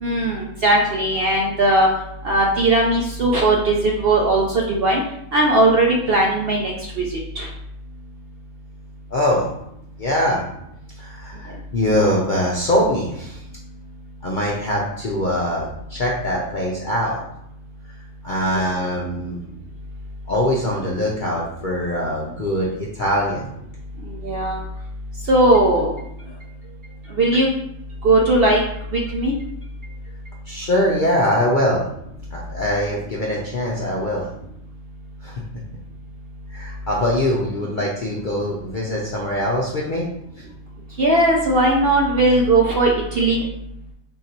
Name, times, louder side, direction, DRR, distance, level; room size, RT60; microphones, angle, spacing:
voice 1, 0.0-1.9 2.2-5.0 5.3-7.1 7.4-7.5 18.5-18.6 24.2-24.6 25.3-25.9 27.2-27.5 28.0-28.6 28.9-29.3 41.0-43.4, right 2 dB, 60° right, -1 dB, 0.6 m, -18 dB
voice 2, 9.1-9.5 10.0-10.4 11.0-13.4 14.2-17.2 18.2-19.4 20.3-23.5 30.5-31.8 32.3-34.3 35.2-35.3 36.5-40.0, left 1 dB, 55° left, -3 dB, 0.6 m, -22 dB
3.8 x 2.6 x 4.3 m, 0.77 s
omnidirectional pair, 1.5 m